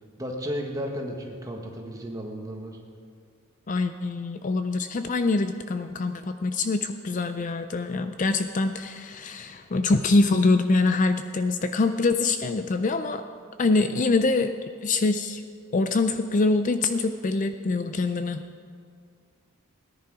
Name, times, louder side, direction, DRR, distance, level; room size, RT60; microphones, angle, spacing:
voice 1, 0.2-2.8, equal, 15° right, 1 dB, 1.4 m, -33 dB
voice 2, 3.7-13.2 13.6-14.5 14.8-15.4 15.7-18.4, left 3 dB, 35° left, 9 dB, 0.4 m, -24 dB
18.0 x 10.5 x 4.8 m, 2.1 s
head